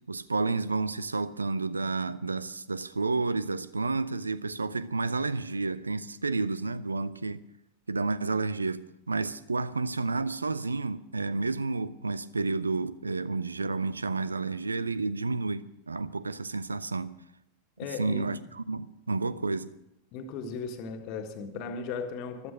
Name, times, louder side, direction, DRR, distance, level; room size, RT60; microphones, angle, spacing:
voice 1, 0.1-7.4 7.9-17.1 18.0-19.7, right 3 dB, 80° right, 0.6 m, -30 dB
voice 2, 17.8-18.3 20.1-22.5, left 5 dB, 40° left, 1.7 m, -36 dB
14.5 x 12.5 x 6.3 m
figure-of-eight pair, 90°, 0 cm